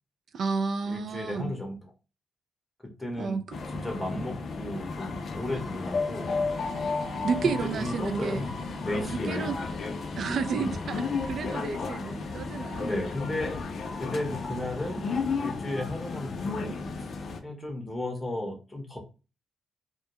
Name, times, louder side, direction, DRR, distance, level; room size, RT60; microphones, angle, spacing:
voice 1, 0.3-1.5 3.2-3.6 7.2-8.4 9.1-9.6 10.2-12.9, right 5 dB, 65° right, 0.3 m, -31 dB
voice 2, 0.9-1.8 3.0-3.4 3.7-6.3 7.6-8.5 8.8-9.5 10.5-10.8 12.8-13.6 14.0-15.0 15.4-16.7 17.4-19.0, left 1 dB, 5° left, 0.7 m, -34 dB
sound 1, 3.5-17.4, left 4 dB, 60° left, 0.4 m, -33 dB
2.1 x 2.1 x 2.8 m
cardioid pair, 90°, 0 cm